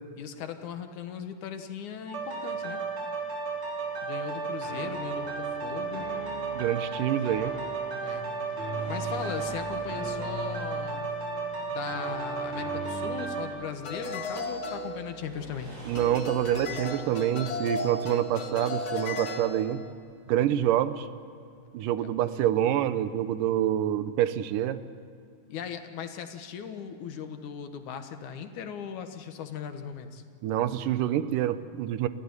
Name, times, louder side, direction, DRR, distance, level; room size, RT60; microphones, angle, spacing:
voice 1, 0.2-2.8 4.0-6.2 8.0-8.4 8.9-11.1 11.7-15.7 25.5-30.2, left 7 dB, 70° left, 7 dB, 2.7 m, -38 dB
sound 1, 2.1-13.5, right 4 dB, 70° right, 6.2 m, -33 dB
voice 2, 6.5-7.5 15.9-19.8 20.3-21.1 21.7-24.8 30.4-32.1, right 11 dB, 85° right, 13 dB, 2.5 m, -27 dB
sound 2, 8.7-20.4 22.1-22.2 23.2-23.3, right 2 dB, 25° right, 8.7 m, -50 dB
sound 3, 13.8-15.6 16.0-19.9, left 2 dB, 55° left, 3.0 m, -35 dB
29.0 x 14.0 x 9.7 m, 2.4 s
omnidirectional pair, 3.7 m